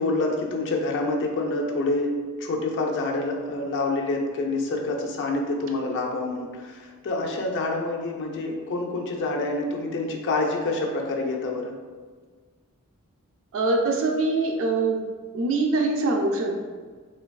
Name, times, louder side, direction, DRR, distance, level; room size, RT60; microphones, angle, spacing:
voice 1, 0.0-11.7, left 2 dB, 55° left, 1 dB, 0.4 m, -27 dB
voice 2, 13.5-15.0 15.3-16.6, right 3 dB, 60° right, 1 dB, 0.4 m, -23 dB
3.3 x 2.2 x 2.2 m, 1.5 s
head